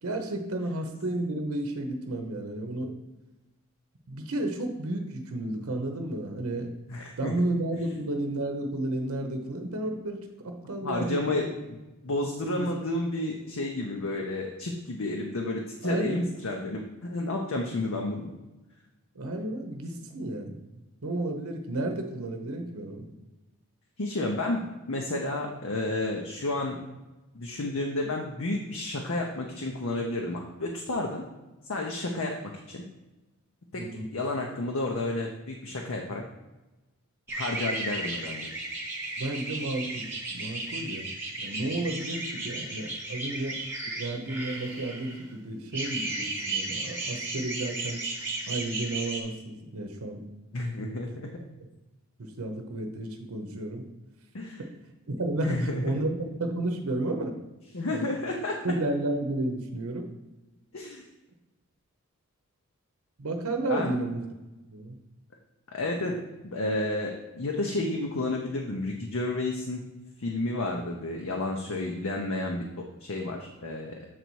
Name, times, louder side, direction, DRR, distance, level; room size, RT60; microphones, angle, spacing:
voice 1, 0.0-2.9 4.1-6.7 7.2-11.5 12.4-12.7 15.8-16.2 19.1-20.6 21.0-23.1 33.7-34.1 39.2-41.1 41.4-43.6 44.0-48.0 48.5-50.2 52.2-53.8 54.6-54.7 55.1-57.3 57.9-58.1 58.6-60.1 63.2-64.2 64.7-65.0, right 1 dB, 75° right, 5 dB, 0.8 m, -32 dB
voice 2, 6.9-7.3 9.2-9.4 10.8-18.3 24.0-26.8 27.3-31.2 31.7-32.8 33.7-33.9 34.1-36.2 37.3-38.5 50.5-51.4 54.3-54.6 55.4-56.0 57.7-58.7 60.7-61.0 63.7-63.9 65.7-69.8 70.2-74.1, left 2 dB, 65° left, 1 dB, 0.7 m, -31 dB
sound 1, 37.3-45.2 45.7-49.2, right 2 dB, 10° right, 1.0 m, -34 dB
7.7 x 4.0 x 4.6 m, 1.1 s
head